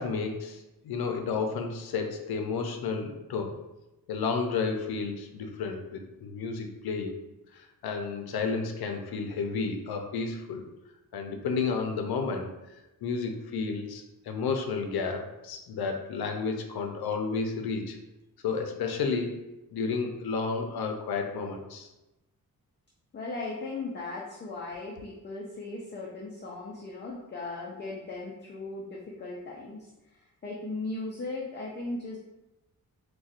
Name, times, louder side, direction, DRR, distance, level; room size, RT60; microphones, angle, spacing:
voice 1, 0.0-3.5 4.1-7.1 7.6-10.6 11.1-12.5 13.0-18.0 18.4-19.4 19.7-21.9, left 4 dB, 90° left, 4 dB, 0.6 m, -31 dB
voice 2, 23.1-29.9 30.4-32.2, left 2 dB, 30° left, -2 dB, 0.4 m, -37 dB
4.1 x 2.2 x 2.4 m, 0.98 s
wide cardioid pair, 125°, 36 cm